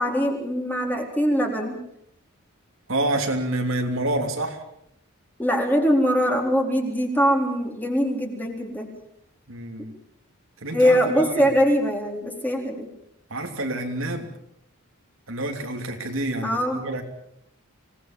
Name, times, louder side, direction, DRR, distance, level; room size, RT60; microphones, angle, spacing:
voice 1, 0.0-1.8 5.4-8.9 10.7-12.9 16.4-17.0, equal, 10° left, 1 dB, 4.1 m, -22 dB
voice 2, 2.9-4.6 9.5-9.9 10.6-11.5 13.3-14.3 15.3-17.0, right 1 dB, 65° right, 4 dB, 3.1 m, -28 dB
26.0 x 19.0 x 7.4 m, 0.76 s
head